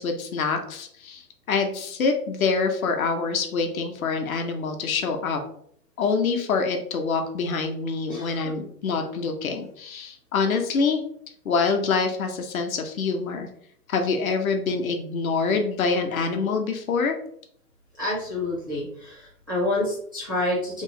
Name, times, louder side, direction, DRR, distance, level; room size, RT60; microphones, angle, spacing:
voice 1, 0.0-5.4 6.0-11.0 11.4-13.5 13.9-17.2, left 4 dB, 60° left, 4 dB, 0.7 m, -25 dB
voice 2, 8.1-8.5 18.0-20.8, left 1 dB, 15° right, -8 dB, 0.4 m, -28 dB
3.0 x 2.6 x 2.7 m, 0.64 s
hypercardioid pair, 140°, 48 cm